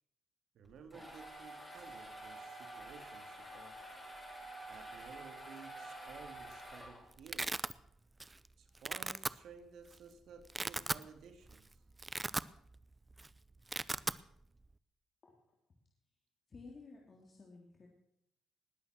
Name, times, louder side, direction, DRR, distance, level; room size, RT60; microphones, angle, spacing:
voice 1, 0.5-3.8 4.7-7.6 8.6-11.7, right 6 dB, 70° right, 7 dB, 2.1 m, -55 dB
sound 1, 0.6-7.3, right 1 dB, 10° left, 5.7 m, -49 dB
Domestic sounds home sounds, 6.3-6.6 6.9-7.7 8.2-8.5 8.7-9.3 9.9-10.0 10.4-11.1 11.5-11.6 11.9-12.8 13.1-13.3 13.5-14.2, right 2 dB, 20° right, 0.5 m, -38 dB
voice 2, 15.2-15.6 16.5-17.9, left 3 dB, 40° left, 0 dB, 3.1 m, -55 dB
20.0 x 8.8 x 6.1 m, 0.74 s
cardioid pair, 90°, 0 cm